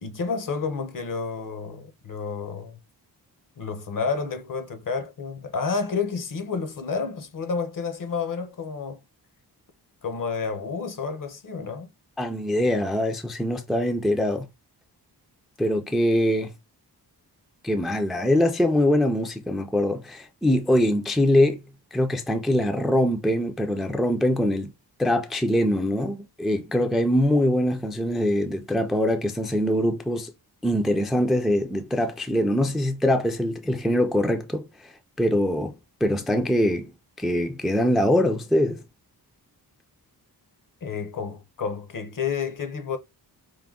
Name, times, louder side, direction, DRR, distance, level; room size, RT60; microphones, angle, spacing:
voice 1, 0.0-2.8 3.6-9.0 10.0-11.9 40.8-43.0, left 5 dB, 55° left, 0.7 m, -30 dB
voice 2, 12.2-14.5 15.6-16.5 17.6-21.6 21.9-24.7 25.0-30.3 30.6-34.6 35.2-35.7 36.0-36.9 37.2-38.8, left 1 dB, ahead, 0.4 m, -23 dB
4.8 x 2.1 x 3.6 m
wide cardioid pair, 140°, 40 cm